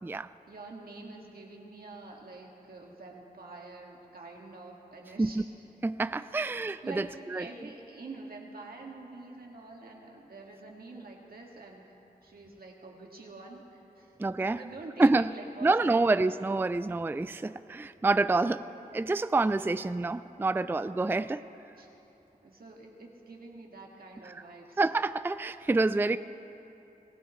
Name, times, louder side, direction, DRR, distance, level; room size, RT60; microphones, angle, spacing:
voice 1, 0.5-5.5 6.8-14.1 14.6-16.1 21.0-21.3 21.8-21.9 22.4-24.8, right 3 dB, 75° right, -1 dB, 2.0 m, -46 dB
voice 2, 5.8-7.5 14.2-14.6 15.0-15.3 15.6-18.7 18.9-21.4 24.8-26.2, right 3 dB, 15° right, 13 dB, 0.3 m, -27 dB
25.5 x 16.0 x 3.2 m, 3.0 s
cardioid pair, 50°, 15 cm